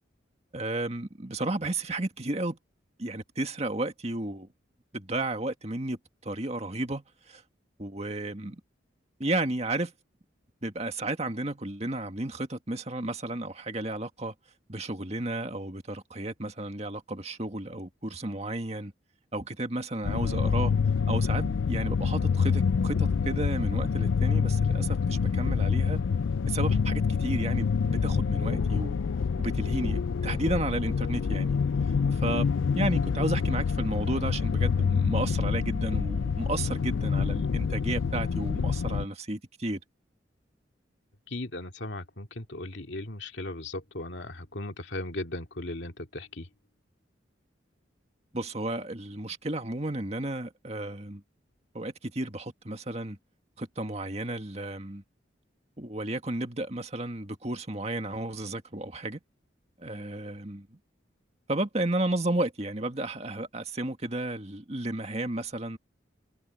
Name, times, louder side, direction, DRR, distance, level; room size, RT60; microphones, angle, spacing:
voice 1, 0.5-2.6 3.0-4.5 4.9-7.4 7.8-8.6 9.2-9.9 10.6-14.3 14.7-18.9 19.3-20.7 21.1-26.0 26.5-29.0 29.4-31.6 32.1-39.8 48.3-51.2 51.7-53.2 53.6-55.0 55.8-59.2 59.8-60.7 61.5-65.8, right 2 dB, 35° right, 1.9 m, -33 dB
sound 1, 20.0-39.1, left 5 dB, 90° left, 0.4 m, -27 dB
voice 2, 41.3-46.5, left 2 dB, 70° left, 2.4 m, -37 dB
head